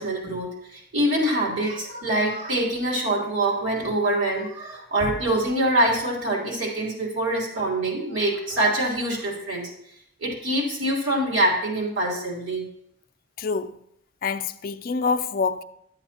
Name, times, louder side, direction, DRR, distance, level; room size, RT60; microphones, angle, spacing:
voice 1, 0.0-9.7 10.2-12.6, right 1 dB, 70° right, 3.2 m, -25 dB
voice 2, 13.4-13.8 14.2-15.6, left 5 dB, 50° left, 0.4 m, -26 dB
11.5 x 7.8 x 2.9 m
head